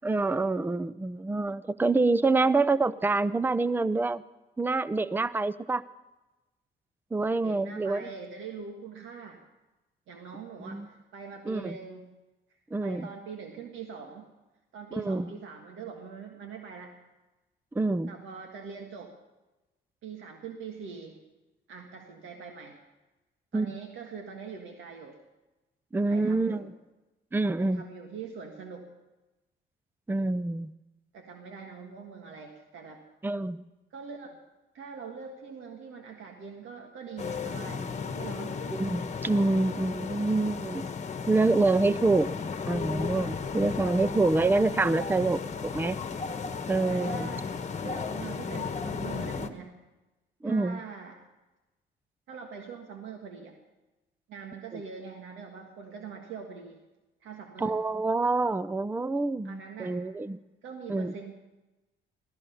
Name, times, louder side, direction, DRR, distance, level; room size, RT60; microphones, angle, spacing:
voice 1, 0.0-4.2 4.6-5.8 7.1-8.1 10.7-10.9 11.5-11.8 12.7-13.1 14.9-15.3 17.7-18.1 23.5-23.8 25.9-26.7 27.3-27.8 30.1-30.7 33.2-33.6 38.7-40.9 41.3-42.3 42.7-46.0 46.7-47.3 50.4-50.8 54.7-54.8 57.6-60.4 60.9-61.1, right 3 dB, 10° right, 16 dB, 0.5 m, -26 dB
voice 2, 7.4-9.4 10.1-12.2 12.8-14.3 14.7-17.0 18.1-19.1 20.0-21.2 21.7-22.8 23.5-25.2 26.1-26.7 27.6-28.9 31.1-33.0 33.9-34.4 34.7-38.6 46.9-47.5 47.8-49.8 50.4-51.2 52.3-53.6 54.3-56.8 57.2-57.8 59.4-60.0 60.6-61.3, right 5 dB, 85° right, 3 dB, 1.7 m, -43 dB
sound 1, 37.2-49.5, left 5 dB, 35° left, 1.3 m, -34 dB
17.0 x 13.5 x 5.6 m, 1.1 s
cardioid pair, 90°, 20 cm